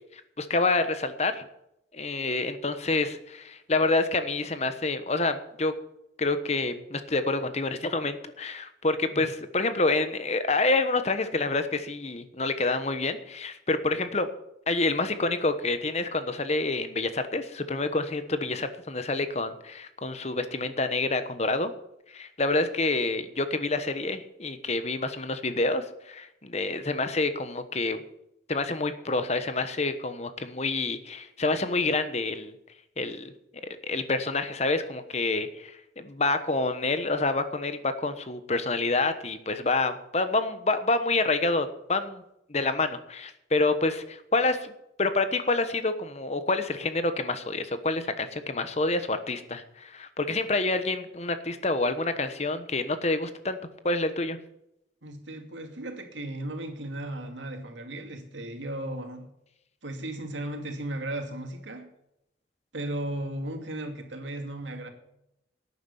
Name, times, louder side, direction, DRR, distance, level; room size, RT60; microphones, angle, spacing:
voice 1, 0.1-1.5 1.9-5.7 6.2-14.3 14.7-21.7 22.1-28.0 28.5-32.5 33.0-33.3 33.8-42.2 42.5-44.7 45.0-53.6 53.8-54.4, left 3 dB, 35° left, 1.1 m, -28 dB
voice 2, 55.0-59.3 59.8-61.9 62.7-64.9, right 1 dB, 90° right, 2.5 m, -35 dB
12.0 x 9.5 x 7.1 m
head